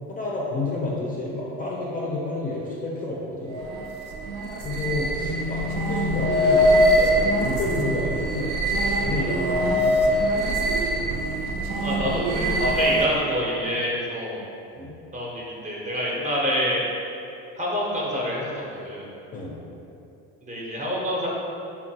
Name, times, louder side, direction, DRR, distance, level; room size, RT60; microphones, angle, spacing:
voice 1, 0.1-3.6 4.6-8.5 8.9-10.3 14.8-14.9 19.3-19.5, left 2 dB, 25° left, -5 dB, 0.4 m, -30 dB
sound 1, 3.5-13.2, equal, 65° right, 0.5 m, -23 dB
voice 2, 11.8-14.4 15.1-16.9 17.6-18.5 18.8-19.1 20.4-21.3, equal, 20° right, -4 dB, 0.7 m, -27 dB
3.6 x 2.2 x 2.7 m, 2.8 s
supercardioid pair, 95°, 34 cm